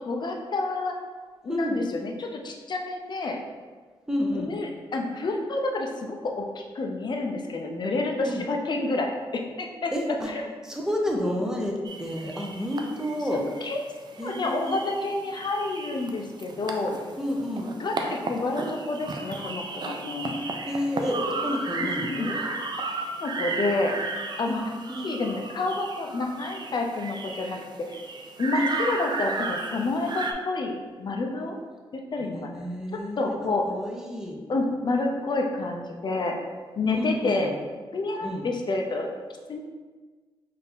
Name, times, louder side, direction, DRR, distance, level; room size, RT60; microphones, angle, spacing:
voice 1, 0.0-0.9 1.4-3.4 4.5-9.9 10.3-10.4 13.6-13.8 14.2-17.0 17.8-20.4 22.0-22.3 23.2-23.9 24.4-24.6 25.0-27.6 27.9-28.0 28.4-31.6 32.1-32.5 33.2-33.7 34.5-36.4 36.8-37.5 37.9-39.1 39.5-39.6, left 2 dB, 50° left, 2 dB, 0.6 m, -29 dB
voice 2, 1.5-1.9 4.1-4.5 8.2-8.5 9.9-10.3 10.6-13.4 14.2-14.9 17.2-17.7 20.6-22.4 24.4-25.2 28.5-28.7 32.2-34.4 36.9-37.5 38.2-38.4, equal, 5° right, 0 dB, 0.7 m, -30 dB
sound 1, 11.8-30.3, right 3 dB, 45° right, 0.4 m, -34 dB
3.9 x 2.7 x 3.6 m, 1.4 s
cardioid pair, 80°, 10 cm